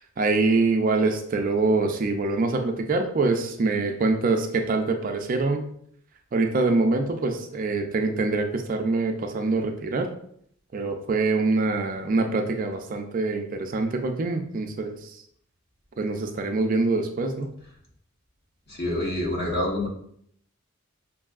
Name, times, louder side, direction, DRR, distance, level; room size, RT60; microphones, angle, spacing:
voice 1, 0.2-5.6 6.3-10.1 10.7-15.0 16.0-17.5, right 3 dB, 40° right, 5 dB, 0.4 m, -24 dB
voice 2, 18.7-19.9, left 1 dB, 50° left, -2 dB, 1.1 m, -27 dB
5.3 x 2.6 x 2.4 m, 0.68 s
head